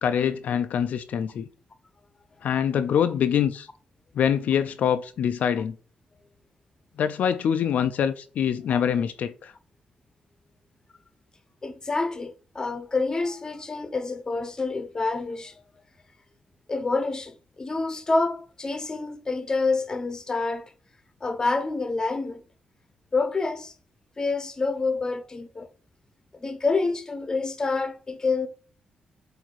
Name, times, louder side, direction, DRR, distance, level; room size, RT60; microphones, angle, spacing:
voice 1, 0.0-1.5 2.4-3.7 4.2-5.8 7.0-9.5, left 8 dB, 75° left, 0.4 m, -24 dB
voice 2, 11.6-15.6 16.7-20.7 21.2-22.4 23.1-23.7 24.2-25.7 26.3-28.5, left 3 dB, 25° left, 0.8 m, -27 dB
7.7 x 2.7 x 4.6 m
cardioid pair, 115°, 3 cm